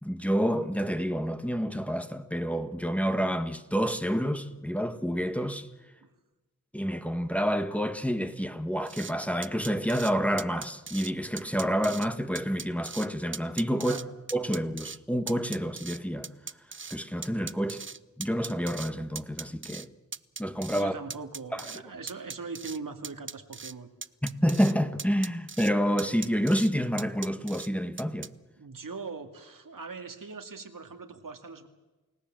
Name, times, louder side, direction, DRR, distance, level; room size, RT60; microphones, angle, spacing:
voice 1, 0.0-5.7 6.7-14.0 14.3-16.3 16.9-17.8 18.2-19.9 20.4-21.0 21.5-21.6 24.2-28.3, equal, 5° left, 1.6 m, -28 dB
sound 1, 8.9-9.1 9.4-10.1 10.4-11.1 11.4-12.1 12.4-13.1 13.3-14.0 14.3-15.0 15.3-17.0 17.2-18.9 19.2-19.9 20.1-20.8 21.1-21.8 22.1-22.8 23.0-23.7 24.0-24.7 25.0-25.7 26.0-26.7 27.0-27.7 28.0-28.3, right 5 dB, 35° right, 0.7 m, -39 dB
voice 2, 20.7-23.9 28.6-31.7, right 4 dB, 75° right, 2.3 m, -41 dB
29.5 x 17.5 x 7.6 m
wide cardioid pair, 55°, 33 cm